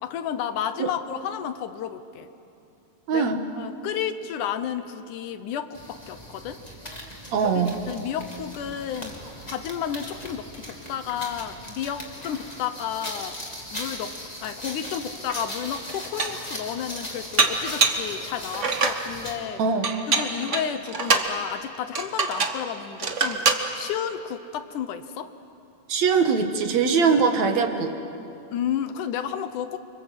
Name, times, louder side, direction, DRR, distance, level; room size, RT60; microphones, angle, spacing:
voice 1, 0.0-2.3 3.1-3.3 3.6-6.6 7.4-9.2 9.5-13.4 13.7-14.1 14.4-19.6 20.1-23.4 23.7-25.3 28.5-29.8, left 9 dB, 75° left, 10 dB, 2.3 m, -32 dB
voice 2, 3.1-3.4 7.3-7.8 19.6-19.9 25.9-27.9, right 5 dB, 60° right, 5 dB, 2.5 m, -22 dB
sound 1, 5.7-19.5, left 1 dB, 10° left, 2.6 m, -39 dB
Dishes pots and pans, 15.3-15.4 15.9-16.5 17.4-18.1 18.5-19.0 19.8-21.3 21.9-22.6 23.0-23.7, right 4 dB, 85° right, 0.6 m, -24 dB
30.0 x 25.5 x 7.9 m, 2.7 s
omnidirectional pair, 3.8 m